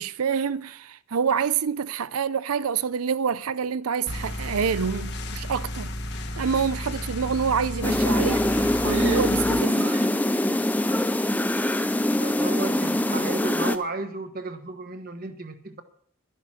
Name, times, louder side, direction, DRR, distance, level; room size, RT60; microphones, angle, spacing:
voice 1, 0.0-5.9 6.4-10.0, right 6 dB, 80° right, 0.5 m, -27 dB
sound 1, 4.1-9.6, left 1 dB, 50° left, 1.3 m, -33 dB
sound 2, 7.8-13.8, left 1 dB, 5° left, 0.5 m, -23 dB
Screaming, 8.8-10.2 10.8-11.4 11.7-12.1, right 5 dB, 65° right, 1.9 m, -41 dB
voice 2, 12.2-15.8, right 3 dB, 40° right, 1.3 m, -33 dB
12.0 x 10.5 x 6.2 m
head